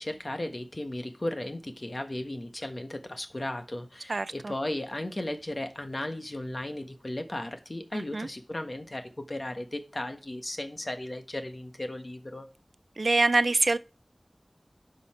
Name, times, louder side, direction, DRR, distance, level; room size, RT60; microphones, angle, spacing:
voice 1, 0.0-12.5, left 1 dB, 45° left, 1.3 m, -35 dB
voice 2, 4.1-4.5 7.9-8.3 13.0-13.8, right 3 dB, 75° right, 0.4 m, -25 dB
10.5 x 5.6 x 4.4 m
wide cardioid pair, 40°, 0 cm